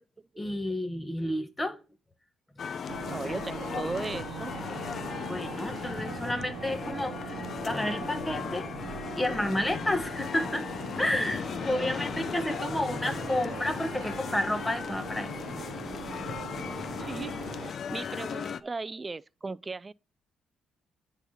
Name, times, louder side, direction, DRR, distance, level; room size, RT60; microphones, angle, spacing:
voice 1, 0.4-1.8 5.3-8.7 9.2-10.7 11.0-15.6 16.5-16.6, left 1 dB, 15° left, 1.6 m, -31 dB
sound 1, 2.6-18.6, left 7 dB, 50° left, 0.6 m, -37 dB
sound 2, 2.9-17.7, right 12 dB, 85° right, 0.5 m, -42 dB
voice 2, 3.1-4.6 17.0-19.9, right 3 dB, 25° right, 0.5 m, -37 dB
9.9 x 4.2 x 5.7 m
cardioid pair, 90°, 0 cm